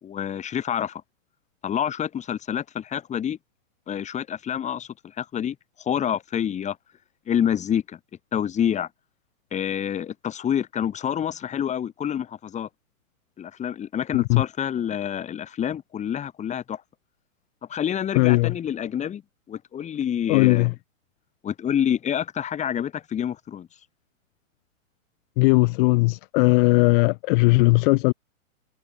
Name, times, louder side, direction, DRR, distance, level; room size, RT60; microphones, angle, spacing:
voice 1, 0.0-1.0 1.6-3.4 3.9-4.9 5.2-6.8 7.3-8.0 8.3-8.9 9.5-12.7 13.4-16.8 17.7-19.2 19.5-20.7 21.4-23.7, left 9 dB, 15° left, 5.7 m, -27 dB
voice 2, 18.1-18.5 20.3-20.7 25.4-28.1, left 26 dB, 40° left, 3.3 m, -18 dB
hypercardioid pair, 150°, 42 cm